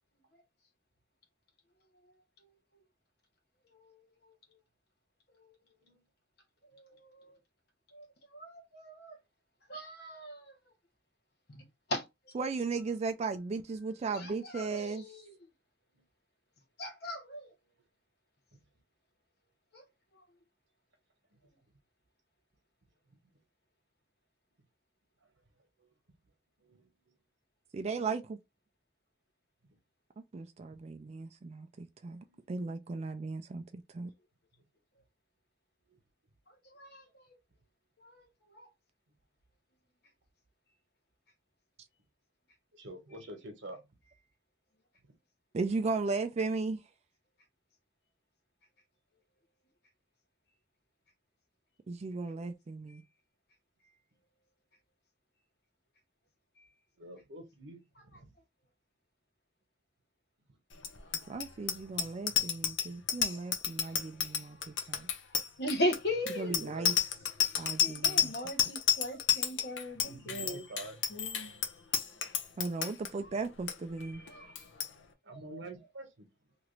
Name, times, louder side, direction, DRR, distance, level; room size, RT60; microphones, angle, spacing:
voice 1, 3.7-4.3 5.3-5.5 6.7-7.4 7.9-8.1 8.3-9.2 9.7-10.5 11.5-12.4 14.1-15.3 16.8-17.5 19.7-19.8 36.7-37.3 38.0-38.7 52.9-53.0 56.6-56.7 65.6-66.6 67.8-70.7 71.1-71.6 73.2-73.3 74.0-74.6 75.3-75.6, left 1 dB, 60° left, 1.0 m, -39 dB
voice 2, 12.3-15.1 27.7-28.4 30.3-34.1 45.5-46.8 51.9-53.0 61.3-65.1 66.4-67.0 67.6-68.3 72.6-74.2, right 4 dB, 35° right, 0.3 m, -36 dB
voice 3, 42.7-43.8 57.0-57.8 66.4-66.9 70.0-71.0 74.1-74.3 75.2-76.3, right 1 dB, 70° right, 1.0 m, -47 dB
Bicycle bell, 60.8-73.1 73.4-73.7 74.0-74.3 74.5-74.9, left 8 dB, 80° left, 0.6 m, -31 dB
3.0 x 2.5 x 3.0 m
head